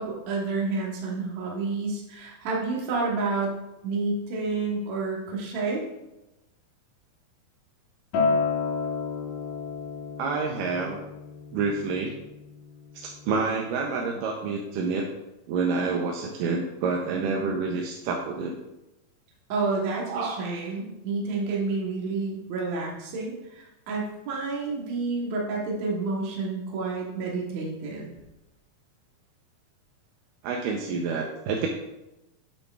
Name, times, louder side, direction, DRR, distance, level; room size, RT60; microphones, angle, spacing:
voice 1, 0.0-3.5 3.8-5.8 19.5-28.1, right 3 dB, 60° right, -3 dB, 2.2 m, -29 dB
Acoustic guitar, 8.1-13.3, left 4 dB, 65° left, 1.9 m, -31 dB
voice 2, 10.2-11.0 11.5-12.1 12.9-15.1 15.5-18.5 20.1-20.4 30.4-31.7, right 4 dB, 80° right, 0 dB, 2.1 m, -28 dB
8.6 x 7.8 x 2.4 m, 0.96 s
omnidirectional pair, 4.1 m